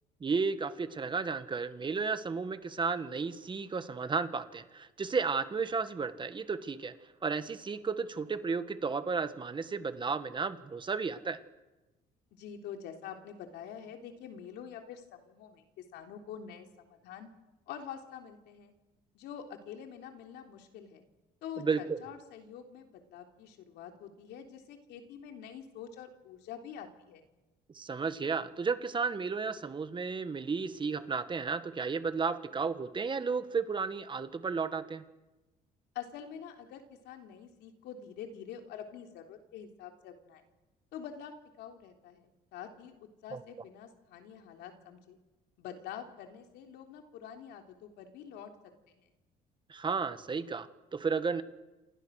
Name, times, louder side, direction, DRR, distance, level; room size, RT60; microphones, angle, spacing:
voice 1, 0.2-6.9 7.2-11.4 21.6-22.0 27.7-35.0 43.3-43.4 49.7-51.4, right 5 dB, 30° right, 11 dB, 1.7 m, -33 dB
voice 2, 12.3-17.3 17.7-18.7 19.1-21.0 21.4-27.2 35.9-40.5 40.9-45.2 45.6-48.5 49.0-49.1, left 8 dB, 85° left, 4 dB, 3.5 m, -46 dB
28.0 x 28.0 x 6.6 m, 1.1 s
cardioid pair, 110°, 17 cm